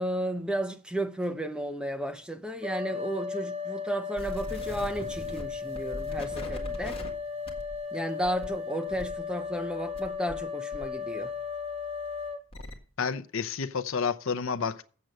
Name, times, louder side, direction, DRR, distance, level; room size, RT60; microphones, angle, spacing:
voice 1, 0.0-7.0 7.9-11.3, right 1 dB, 5° right, 0.6 m, -33 dB
sound 1, 2.6-12.4, left 5 dB, 30° right, 2.2 m, -36 dB
sound 2, 4.2-10.4 10.7-12.7, equal, 25° left, 1.8 m, -42 dB
voice 2, 13.0-14.8, left 5 dB, 65° left, 0.6 m, -30 dB
7.6 x 7.6 x 6.5 m
head